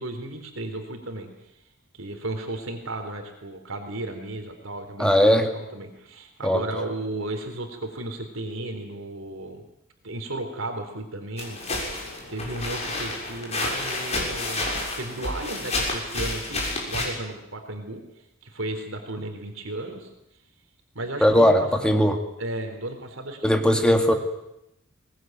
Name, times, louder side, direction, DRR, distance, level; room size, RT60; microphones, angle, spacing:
voice 1, 0.0-1.5 1.9-9.6 10.0-14.7 15.0-20.1 20.9-22.0 22.4-24.0, right 2 dB, 70° right, 5 dB, 3.8 m, -34 dB
voice 2, 5.0-5.5 6.4-6.6 21.2-22.2 23.4-24.1, equal, 5° left, 5 dB, 2.1 m, -19 dB
sound 1, 11.4-17.1, left 2 dB, 30° left, 6.7 m, -30 dB
22.5 x 20.0 x 9.3 m, 0.86 s
head